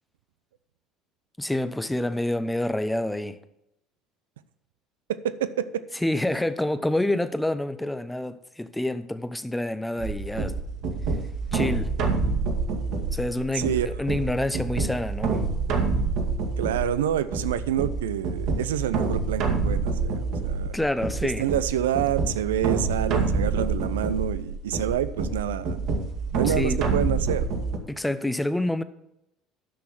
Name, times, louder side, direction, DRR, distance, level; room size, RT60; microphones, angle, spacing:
voice 1, 1.4-3.4 6.0-10.6 11.5-11.9 13.1-15.4 20.7-21.4 26.4-26.8 27.9-28.8, left 1 dB, 5° left, 0.8 m, -27 dB
voice 2, 5.1-5.7 13.5-13.9 16.6-20.7 21.2-25.8 26.4-27.5, right 10 dB, 85° right, 0.5 m, -27 dB
sound 1, 10.0-27.8, right 4 dB, 65° right, 1.9 m, -27 dB
10.0 x 6.2 x 6.1 m
hypercardioid pair, 70°, 0 cm